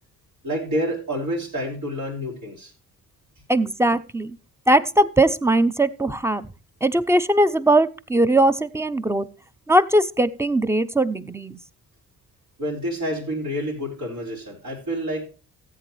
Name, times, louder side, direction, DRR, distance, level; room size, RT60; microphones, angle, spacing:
voice 1, 0.4-2.7 12.6-15.3, equal, 75° right, -6 dB, 4.6 m, -28 dB
voice 2, 3.5-4.4 4.7-6.5 6.8-9.3 9.7-11.6, right 1 dB, 10° right, 13 dB, 0.6 m, -20 dB
14.5 x 8.4 x 3.1 m, 0.33 s
cardioid pair, 90°, 30 cm